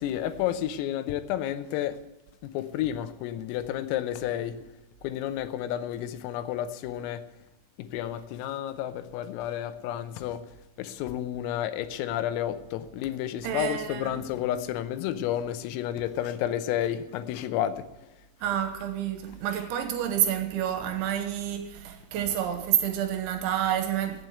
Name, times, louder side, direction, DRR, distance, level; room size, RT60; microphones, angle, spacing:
voice 1, 0.0-2.0 2.4-4.7 5.0-7.2 7.8-10.4 10.8-18.1, left 11 dB, 85° left, 3.6 m, -31 dB
voice 2, 13.4-14.2 18.4-24.2, right 10 dB, 75° right, 3.2 m, -29 dB
15.0 x 8.2 x 7.9 m
omnidirectional pair, 5.9 m